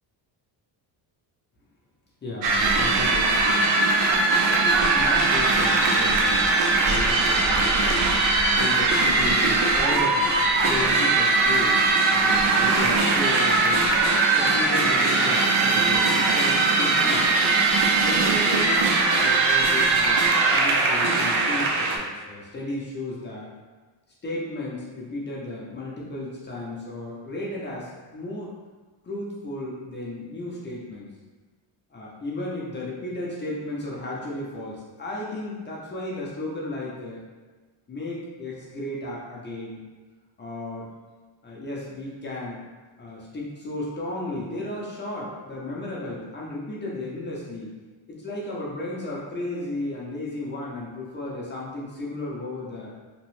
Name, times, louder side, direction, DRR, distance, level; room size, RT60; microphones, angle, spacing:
voice 1, 2.2-3.7 4.0-8.1 8.6-13.9 14.3-17.4 18.0-23.5 24.2-28.5 29.0-31.1 31.9-37.2 37.9-39.8 40.4-40.9 41.4-42.6 43.0-47.7 48.1-52.9, left 2 dB, 25° left, -4 dB, 0.4 m, -34 dB
sound 1, 2.4-22.0, right 3 dB, 75° right, 0.6 m, -20 dB
2.8 x 2.0 x 3.0 m, 1.4 s
wide cardioid pair, 175°, 48 cm